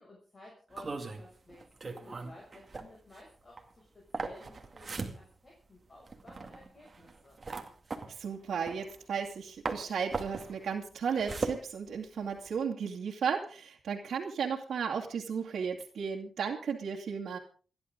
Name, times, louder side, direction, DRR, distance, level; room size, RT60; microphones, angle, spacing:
voice 1, 0.0-7.4, left 1 dB, 30° left, -2 dB, 6.7 m, -55 dB
sound 1, 0.7-9.4 9.6-12.5, right 3 dB, 35° right, 2.2 m, -39 dB
voice 2, 8.1-17.4, right 6 dB, 90° right, -2 dB, 2.3 m, -34 dB
29.0 x 11.5 x 3.8 m, 0.41 s
wide cardioid pair, 135°, 0 cm